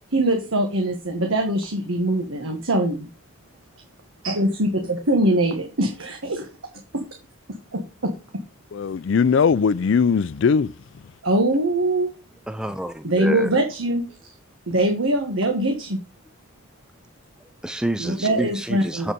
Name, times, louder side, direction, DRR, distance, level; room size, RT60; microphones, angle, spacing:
voice 1, 0.0-3.1 4.2-6.5 6.9-7.0 7.7-8.1 11.2-12.1 13.0-14.3 14.7-16.0 18.0-19.1, right 1 dB, 85° right, 1.6 m, -22 dB
voice 2, 8.7-10.7, left 6 dB, 70° left, 0.4 m, -19 dB
voice 3, 12.5-13.5 17.6-19.1, right 1 dB, 5° right, 0.4 m, -28 dB
7.5 x 6.9 x 5.2 m
head